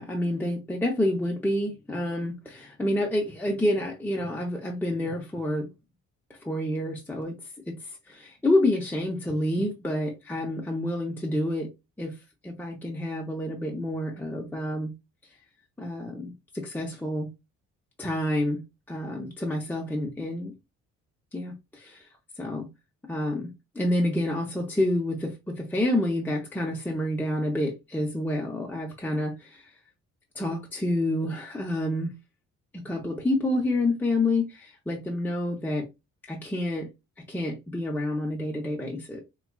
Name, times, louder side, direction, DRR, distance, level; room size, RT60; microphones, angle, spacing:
voice 1, 0.0-5.7 6.3-7.3 7.7-11.7 12.0-12.2 12.4-14.9 15.8-17.3 18.0-18.6 18.9-20.5 21.3-22.1 22.4-22.7 23.1-29.7 30.3-32.1 32.7-35.9 36.2-36.9 37.3-39.2, left 1 dB, 5° left, 0.7 m, -28 dB
4.9 x 2.3 x 2.3 m
cardioid pair, 90°, 30 cm